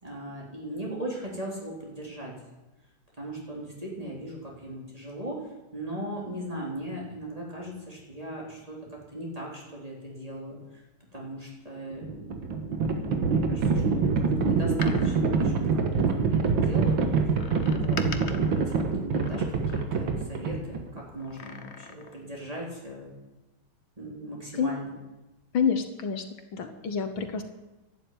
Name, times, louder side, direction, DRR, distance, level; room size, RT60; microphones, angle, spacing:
voice 1, 0.0-2.3 3.2-10.8 11.1-16.0 16.3-23.1 24.0-24.9, right 1 dB, 15° right, -3 dB, 4.0 m, -39 dB
Livestock farm animals working animals, 11.9-21.0, right 4 dB, 70° right, 2.3 m, -25 dB
Door, 14.6-16.4 17.4-20.2 21.2-22.3 22.6-22.7, left 5 dB, 40° left, 1.1 m, -43 dB
voice 2, 25.5-26.2 26.5-27.4, left 6 dB, 70° left, 7 dB, 2.0 m, -27 dB
12.0 x 12.0 x 9.6 m, 1.0 s
omnidirectional pair, 2.3 m